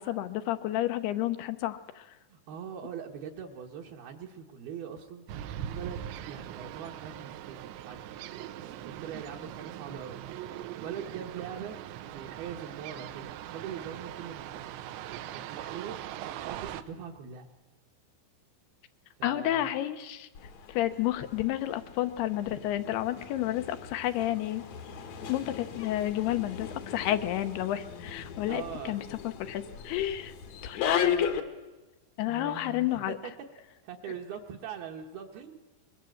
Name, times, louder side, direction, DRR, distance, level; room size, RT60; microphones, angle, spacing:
voice 1, 0.0-2.1 19.2-20.3 20.7-24.6 25.3-30.3 30.6-31.4 32.2-33.2, left 13 dB, 75° left, 11 dB, 2.7 m, -31 dB
voice 2, 2.3-5.3 5.6-10.5 10.8-14.7 15.3-17.5 19.2-19.7 28.5-29.0 32.3-33.3 33.8-35.6, right 8 dB, 65° right, 1 dB, 3.0 m, -42 dB
sound 1, 5.3-16.8, right 11 dB, 80° right, 3.2 m, -41 dB
sound 2, 20.3-31.4, left 8 dB, 60° left, 2.0 m, -37 dB
24.5 x 22.0 x 7.8 m, 1.1 s
omnidirectional pair, 5.2 m